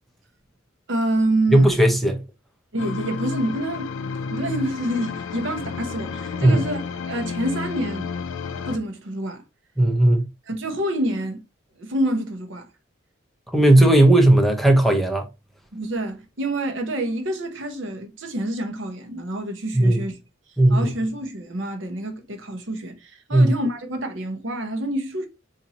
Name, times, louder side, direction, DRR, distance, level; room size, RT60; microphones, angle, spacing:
voice 1, 0.9-1.7 2.7-3.9 4.3-6.8 7.0-8.1 8.7-9.4 10.5-11.4 11.8-12.7 15.7-20.2 20.7-25.3, right 1 dB, 65° right, 0.8 m, -27 dB
voice 2, 1.5-2.2 6.4-6.6 9.8-10.3 13.5-15.3 19.7-20.0 20.6-20.9 23.3-23.5, right 1 dB, ahead, 0.6 m, -16 dB
sound 1, 2.8-8.8, left 5 dB, 75° left, 0.4 m, -31 dB
4.1 x 2.5 x 2.8 m
head